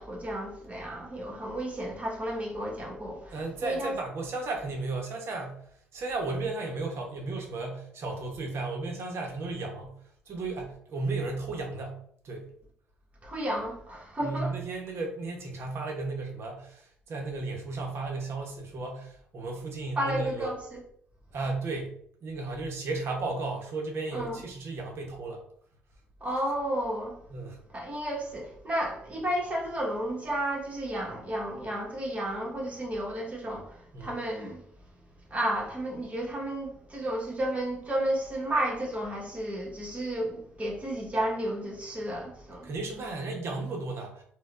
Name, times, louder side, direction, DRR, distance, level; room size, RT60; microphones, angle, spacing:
voice 1, 0.0-3.9 13.2-14.6 20.0-20.8 24.1-24.4 26.2-27.2 27.7-34.6 35.3-42.7, right 1 dB, 30° right, 1.3 m, -32 dB
voice 2, 3.3-5.6 5.9-10.0 10.3-12.0 12.2-12.5 14.2-20.5 21.3-21.9 22.2-25.4 27.3-27.6 33.9-34.1 42.6-44.2, right 3 dB, 60° right, 0.9 m, -34 dB
4.1 x 2.3 x 2.5 m
supercardioid pair, 60°, 5 cm